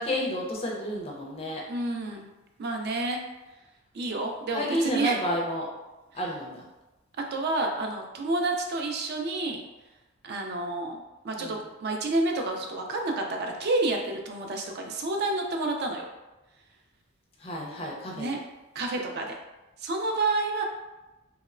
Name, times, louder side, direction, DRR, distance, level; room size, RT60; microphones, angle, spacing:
voice 1, 0.0-1.6 4.5-5.7 6.1-6.7 11.4-11.6 17.4-18.3, equal, 25° left, -2 dB, 0.4 m, -30 dB
voice 2, 1.7-2.3 2.6-3.2 3.9-5.2 7.3-9.6 10.2-11.0 11.2-16.0 18.2-18.4 18.8-19.3 19.8-20.6, right 2 dB, 45° right, 2 dB, 0.3 m, -29 dB
2.9 x 2.0 x 2.4 m, 1.1 s
head